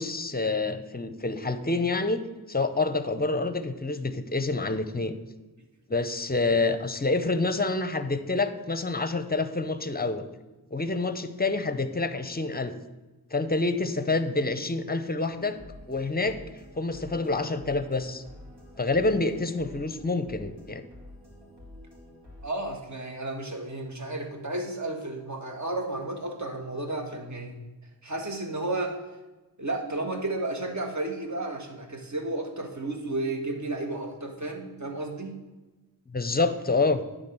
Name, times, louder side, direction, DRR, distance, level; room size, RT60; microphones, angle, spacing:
voice 1, 0.0-2.2 2.5-5.2 5.9-10.2 10.7-12.7 13.3-15.6 15.9-16.4 16.8-18.2 18.8-20.8 36.1-37.0, left 3 dB, 25° left, 10 dB, 0.6 m, -27 dB
sound 1, 15.3-22.5, left 1 dB, 80° right, 2.3 m, -48 dB
voice 2, 22.4-27.6 28.0-29.0 29.6-35.4, right 2 dB, 45° right, 3 dB, 1.4 m, -32 dB
9.7 x 3.7 x 6.8 m, 1.2 s
wide cardioid pair, 65°, 40 cm